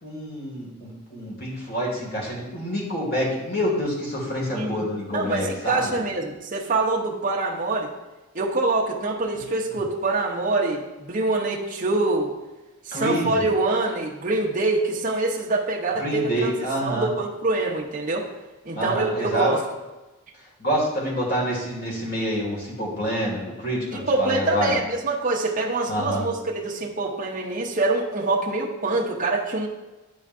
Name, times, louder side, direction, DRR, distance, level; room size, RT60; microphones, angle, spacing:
voice 1, 0.0-5.9 9.3-9.4 12.9-13.4 16.0-17.1 18.7-19.5 20.6-24.7 25.9-26.2, equal, 45° left, -3 dB, 2.0 m, -27 dB
voice 2, 4.5-4.8 5.1-7.9 8.3-12.3 12.8-16.5 16.8-18.3 18.6-19.6 23.9-29.7, right 2 dB, 35° right, -3 dB, 0.7 m, -25 dB
10.5 x 4.5 x 2.5 m, 1.1 s
head